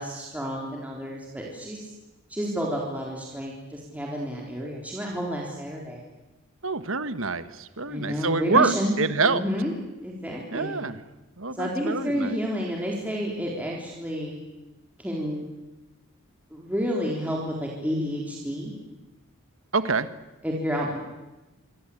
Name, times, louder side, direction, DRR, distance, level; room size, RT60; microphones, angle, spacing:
voice 1, 0.0-1.9 2.3-6.0 7.8-9.0 9.2-9.7 10.0-10.8 11.5-14.4 15.0-15.5 16.5-18.7 20.4-21.0, equal, 5° right, -3 dB, 4.1 m, -30 dB
voice 2, 6.6-8.7 9.0-9.4 10.5-11.0 11.4-12.3 19.7-20.1, right 4 dB, 65° right, 12 dB, 1.4 m, -26 dB
27.0 x 25.0 x 8.7 m, 1.1 s
head